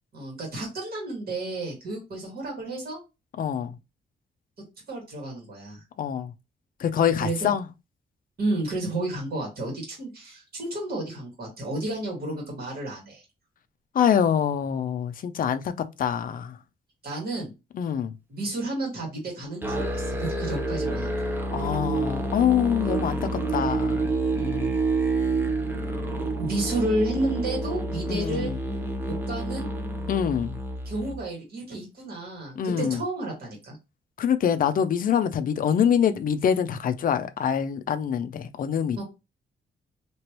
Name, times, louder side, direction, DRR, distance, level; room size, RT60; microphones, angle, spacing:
voice 1, 0.1-3.0 4.9-5.8 7.2-7.5 8.4-13.2 17.0-17.5 18.3-21.1 24.3-24.7 26.4-28.5 29.0-29.7 30.9-33.8 39.0-39.1, right 2 dB, 50° right, 1.8 m, -31 dB
voice 2, 3.4-3.8 6.0-6.3 6.8-7.6 13.9-16.6 17.7-18.1 21.5-24.1 28.1-28.6 30.1-30.6 32.6-33.0 34.2-39.0, left 8 dB, 45° left, 0.4 m, -25 dB
Musical instrument, 19.6-31.2, right 2 dB, 10° right, 0.5 m, -28 dB
3.1 x 2.9 x 2.9 m
wide cardioid pair, 165°, 20 cm